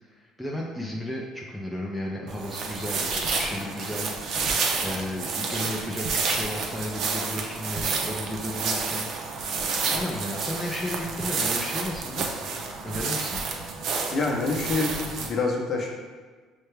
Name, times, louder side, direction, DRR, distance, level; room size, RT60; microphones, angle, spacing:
voice 1, 0.1-4.5 4.8-9.6 9.9-12.3 12.8-13.4, left 1 dB, 5° left, -3 dB, 0.5 m, -34 dB
sound 1, 2.3-15.3, right 4 dB, 55° right, 0.5 m, -29 dB
voice 2, 14.1-15.9, left 3 dB, 40° left, 0 dB, 0.8 m, -26 dB
5.5 x 2.2 x 3.2 m, 1.4 s
cardioid pair, 115°, 0 cm